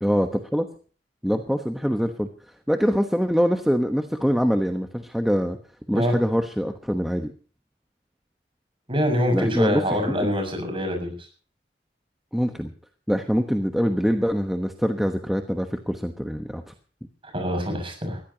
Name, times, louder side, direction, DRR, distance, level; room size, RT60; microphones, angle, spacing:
voice 1, 0.0-0.7 1.2-2.3 2.7-5.6 5.9-7.3 9.3-9.8 12.3-12.7 13.1-16.7, equal, ahead, 5 dB, 1.1 m, -24 dB
voice 2, 8.9-11.1 17.2-18.2, equal, 30° right, 4 dB, 6.7 m, -24 dB
21.5 x 15.5 x 2.9 m, 0.41 s
head